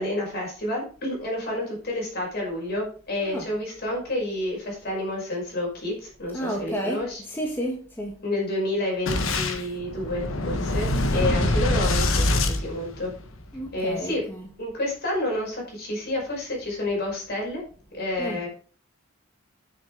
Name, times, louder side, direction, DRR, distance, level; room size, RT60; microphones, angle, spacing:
voice 1, 0.0-7.2 8.2-13.1 13.7-14.2 14.6-17.6 17.9-18.5, left 1 dB, 55° left, -2 dB, 5.6 m, -29 dB
voice 2, 3.2-3.6 6.3-8.2 11.2-11.7 13.5-14.6 18.2-18.5, equal, 10° left, 0 dB, 1.6 m, -32 dB
Boom, 9.1-13.4, left 1 dB, 90° left, 1.3 m, -24 dB
10.0 x 6.8 x 4.8 m, 0.42 s
head